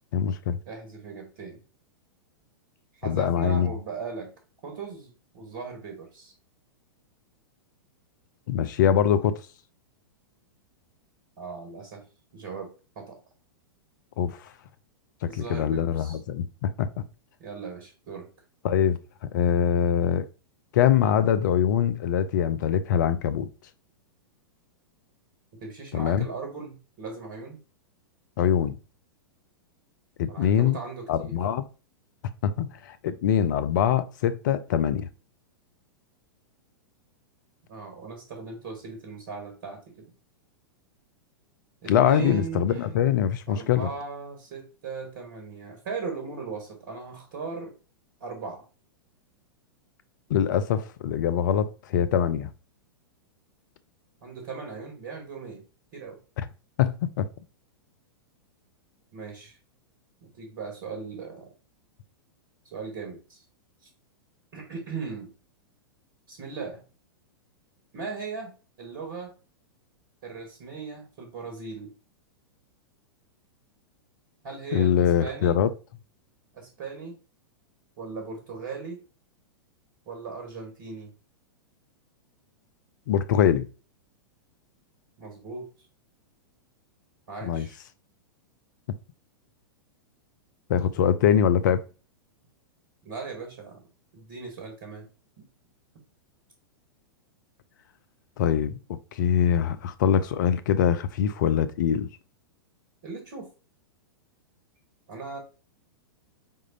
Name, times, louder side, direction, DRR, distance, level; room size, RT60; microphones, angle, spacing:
voice 1, 0.1-0.6 3.1-3.7 8.5-9.3 14.2-14.4 15.2-16.9 18.6-20.3 20.7-23.5 25.9-26.3 28.4-28.8 30.2-30.8 31.1-31.6 32.4-35.1 41.9-43.9 50.3-52.5 56.8-57.3 74.7-75.7 83.1-83.7 87.4-87.7 90.7-91.8 98.4-102.1, left 9 dB, 50° left, 0.5 m, -23 dB
voice 2, 0.7-1.6 2.9-4.3 4.6-6.3 11.4-12.0 12.3-12.7 12.9-13.2 15.2-16.2 17.4-18.3 25.6-27.6 30.3-31.4 37.7-40.1 41.8-42.9 43.5-47.7 48.2-48.7 54.2-55.6 55.9-56.2 59.1-59.6 60.2-61.5 62.7-63.4 64.5-65.3 66.3-66.8 67.9-69.3 70.2-71.9 74.4-75.6 76.5-77.2 78.0-79.0 80.1-81.1 85.2-85.7 87.3-87.8 93.0-93.9 94.1-95.1 103.0-103.5 105.1-105.4, right 4 dB, 50° right, 1.4 m, -38 dB
4.7 x 3.6 x 2.7 m
figure-of-eight pair, 100°, 12 cm